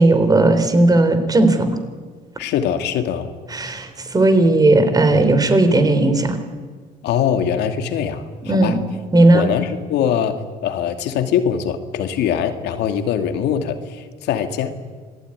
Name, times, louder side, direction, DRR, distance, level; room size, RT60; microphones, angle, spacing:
voice 1, 0.0-1.8 3.5-6.4 8.5-8.8 9.1-9.5, right 2 dB, 20° right, 8 dB, 3.7 m, -15 dB
voice 2, 2.4-3.3 7.0-8.8 9.3-14.8, left 8 dB, 80° left, 7 dB, 2.6 m, -22 dB
26.5 x 18.5 x 9.8 m, 1.5 s
cardioid pair, 110°, 17 cm